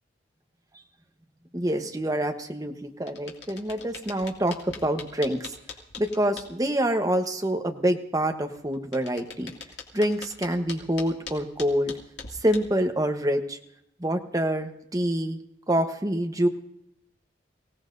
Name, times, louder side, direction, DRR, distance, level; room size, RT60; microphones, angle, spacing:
voice 1, 1.5-5.5 6.0-9.5 9.9-11.9 12.4-13.6 14.0-15.4 15.7-16.5, right 1 dB, 20° right, 4 dB, 1.0 m, -26 dB
sound 1, 3.1-6.5 8.5-12.8, left 5 dB, 70° left, 2.4 m, -41 dB
24.0 x 17.0 x 2.6 m, 0.79 s
head